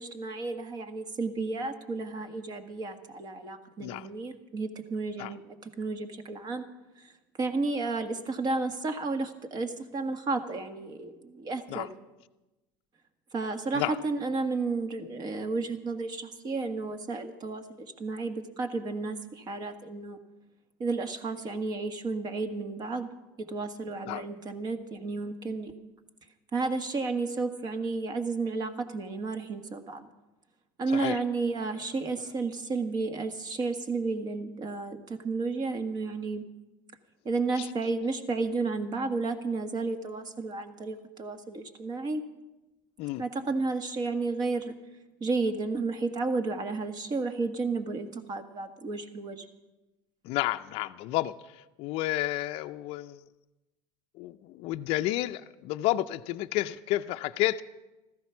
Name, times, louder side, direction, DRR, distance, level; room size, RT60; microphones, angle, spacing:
voice 1, 0.0-5.4 5.8-6.7 7.0-7.1 7.4-11.9 13.3-20.2 20.8-23.1 23.4-25.7 26.5-30.1 30.8-36.4 37.3-42.2 43.2-44.7 45.2-49.5, right 3 dB, 40° right, 7 dB, 1.7 m, -32 dB
voice 2, 50.3-51.3 51.8-53.2 54.2-57.6, left 16 dB, 60° left, 7 dB, 0.5 m, -30 dB
15.0 x 13.5 x 5.9 m, 1.0 s
supercardioid pair, 100°, 11 cm